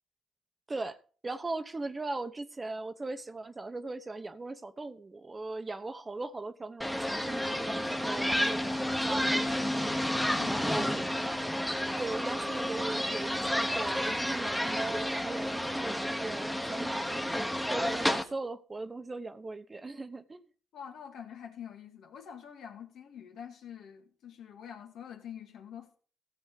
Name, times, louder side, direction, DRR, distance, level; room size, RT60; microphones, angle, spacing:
voice 1, 1.2-11.1 12.0-17.4 17.7-20.4, right 3 dB, 25° right, 0.9 m, -39 dB
sound 1, 6.8-18.2, equal, 5° left, 1.2 m, -31 dB
voice 2, 10.2-10.7 20.7-26.0, left 8 dB, 75° left, 2.1 m, -46 dB
15.5 x 7.2 x 3.9 m
cardioid pair, 90°, 0 cm